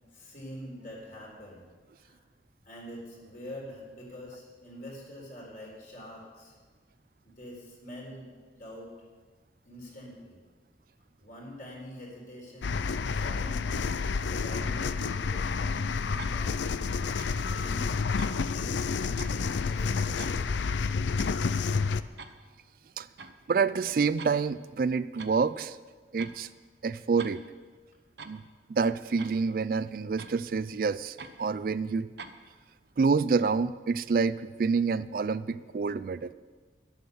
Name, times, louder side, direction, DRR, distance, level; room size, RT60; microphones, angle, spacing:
voice 1, 0.0-1.6 2.0-2.2 2.6-6.5 7.2-8.9 9.7-10.4 11.2-13.9 14.2-17.0 17.4-18.0 18.4-20.4, equal, 45° left, -2 dB, 4.1 m, -45 dB
sound 1, 12.6-22.0, left 5 dB, 90° left, 0.5 m, -29 dB
sound 2, 16.2-16.4 17.2-17.4 18.2-18.3 19.2-19.4 20.2-20.4 21.2-21.3 22.2-22.3 23.2-23.4 24.2-24.4 25.2-25.4 26.2-26.4 27.2-27.4 28.2-28.4 29.2-29.4 30.2-30.4 31.2-31.3 32.2-32.4, right 4 dB, 75° right, 0.9 m, -44 dB
voice 2, 23.5-25.8 26.1-26.5 26.8-27.4 28.2-28.4 28.7-32.1 33.0-36.3, right 5 dB, 50° right, 15 dB, 0.3 m, -27 dB
11.5 x 11.0 x 7.0 m, 1.4 s
head